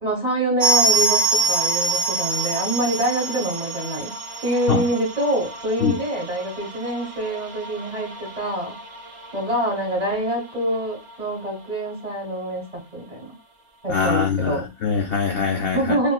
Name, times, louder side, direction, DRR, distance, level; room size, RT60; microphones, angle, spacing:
voice 1, 0.0-4.1 4.4-8.7 9.3-13.3 13.8-14.7 15.7-16.1, right 1 dB, 30° right, 0 dB, 1.0 m, -25 dB
sound 1, 0.6-11.1 11.4-11.5 11.7-11.9 12.5-12.6, right 3 dB, 55° right, 0.8 m, -26 dB
voice 2, 13.9-16.0, left 5 dB, 70° left, 2 dB, 0.5 m, -23 dB
3.6 x 2.4 x 2.2 m, 0.25 s
omnidirectional pair, 1.5 m